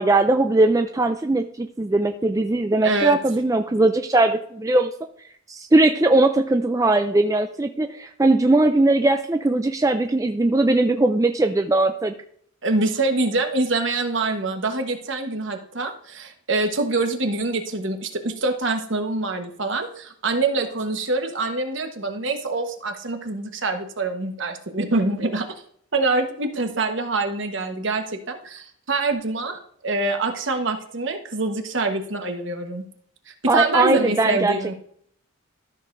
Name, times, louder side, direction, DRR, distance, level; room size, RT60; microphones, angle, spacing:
voice 1, 0.0-4.9 5.5-12.1 33.5-34.5, right 2 dB, 15° right, 6 dB, 0.3 m, -20 dB
voice 2, 2.8-3.2 12.6-25.5 25.9-32.9 33.3-34.8, right 3 dB, 60° right, 5 dB, 1.2 m, -25 dB
13.5 x 6.4 x 2.6 m, 0.63 s
head